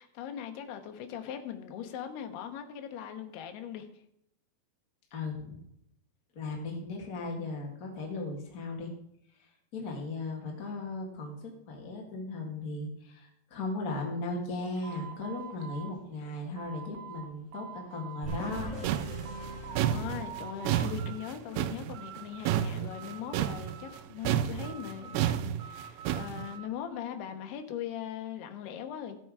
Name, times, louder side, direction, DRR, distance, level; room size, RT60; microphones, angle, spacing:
voice 1, 0.0-3.9 19.9-29.2, left 9 dB, 75° left, 2.9 m, -40 dB
voice 2, 5.1-5.6 6.3-8.9 9.4-18.7 19.7-19.8, left 2 dB, 50° left, 1.0 m, -37 dB
sound 1, 14.8-17.3 17.5-18.6 19.0-19.9 20.2-21.3 21.6-22.6 22.9-24.2 24.6-26.7, right 7 dB, 70° right, 2.8 m, -46 dB
sound 2, 18.2-21.0, right 1 dB, 25° right, 1.9 m, -41 dB
sound 3, 18.3-24.0 24.3-26.5, right 11 dB, 85° right, 2.7 m, -31 dB
15.0 x 7.8 x 4.8 m
omnidirectional pair, 5.0 m